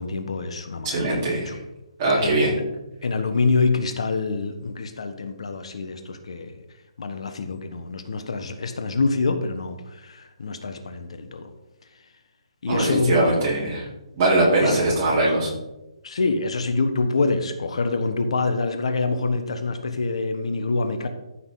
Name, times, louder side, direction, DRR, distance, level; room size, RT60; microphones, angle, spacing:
voice 1, 0.0-1.6 2.2-2.6 3.0-6.6 7.0-11.5 12.6-13.3 14.6-14.8 16.0-21.1, left 3 dB, 65° left, 8 dB, 1.1 m, -26 dB
voice 2, 0.8-1.6 2.0-2.5 12.7-13.9 14.2-15.5, right 2 dB, 20° right, -7 dB, 3.7 m, -21 dB
14.0 x 6.3 x 3.9 m, 0.99 s
hypercardioid pair, 175°, 3 cm